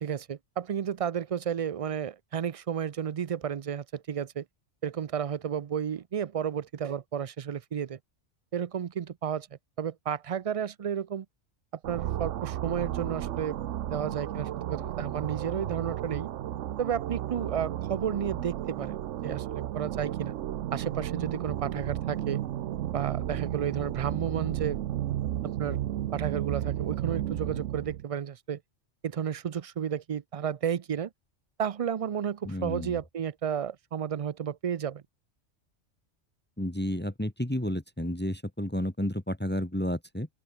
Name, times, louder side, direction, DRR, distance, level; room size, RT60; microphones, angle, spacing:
voice 1, 0.0-4.4 4.8-8.0 8.5-9.5 9.8-11.3 11.9-16.3 16.8-20.4 20.7-22.4 22.9-24.8 25.6-25.8 26.1-28.6 29.0-31.1 31.6-35.0, right 8 dB, 55° right, 0.4 m, -32 dB
sound 1, 11.8-28.0, right 12 dB, 80° right, 1.0 m, -33 dB
voice 2, 32.4-33.0 36.6-40.3, left 1 dB, 10° left, 1.1 m, -31 dB
open air
omnidirectional pair, 1.2 m